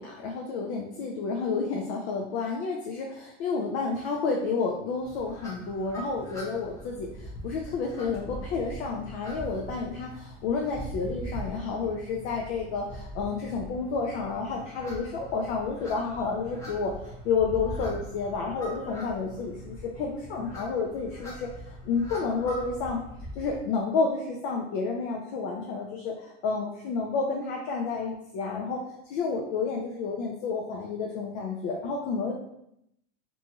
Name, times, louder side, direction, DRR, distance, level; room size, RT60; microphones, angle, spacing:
voice 1, 0.0-7.1 7.4-16.9 17.2-21.5 21.9-23.0 23.4-28.8 29.1-32.3, left 4 dB, 60° left, 0 dB, 0.5 m, -30 dB
sound 1, 5.0-23.6, equal, 10° left, 0.6 m, -42 dB
2.6 x 2.3 x 2.9 m, 0.78 s
supercardioid pair, 145°, 36 cm